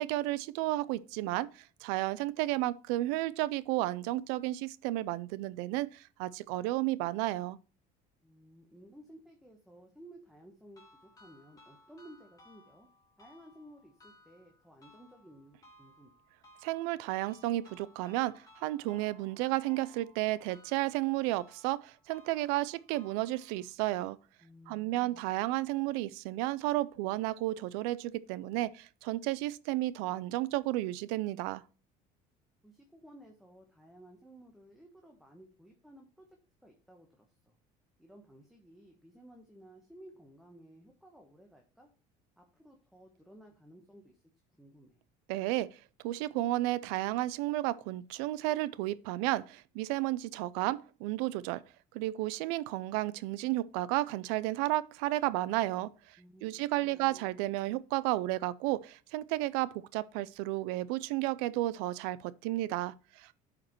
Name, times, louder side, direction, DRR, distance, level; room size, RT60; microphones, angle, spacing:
voice 1, 0.0-7.6 16.6-24.2 24.7-31.6 45.3-45.8 46.0-51.6 51.9-63.3, right 17 dB, 90° right, 0.4 m, -32 dB
voice 2, 8.2-12.9 13.2-16.1 24.4-25.2 32.6-36.3 36.6-37.5 38.0-41.9 42.4-44.2 44.6-45.0 56.2-57.3, right 1 dB, ahead, 1.1 m, -56 dB
sound 1, 10.8-23.7, equal, 20° left, 2.6 m, -61 dB
11.5 x 5.1 x 3.0 m
cardioid pair, 115°, 18 cm